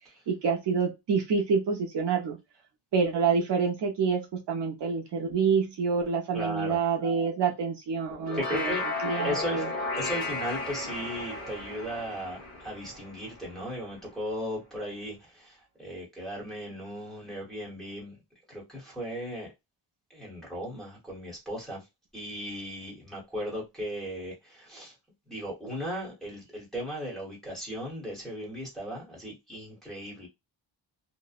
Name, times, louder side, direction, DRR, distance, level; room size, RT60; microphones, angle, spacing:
voice 1, 0.3-2.4 2.9-8.8 9.0-9.7, right 5 dB, 60° right, 0.7 m, -27 dB
voice 2, 6.3-6.8 8.3-8.8 9.2-9.7 9.9-18.2 18.5-19.5 20.1-21.8 22.1-24.9 25.3-30.3, equal, ahead, 0.9 m, -36 dB
sound 1, 8.1-13.6, left 2 dB, 30° left, 1.4 m, -34 dB
2.7 x 2.0 x 2.3 m
wide cardioid pair, 170°, 46 cm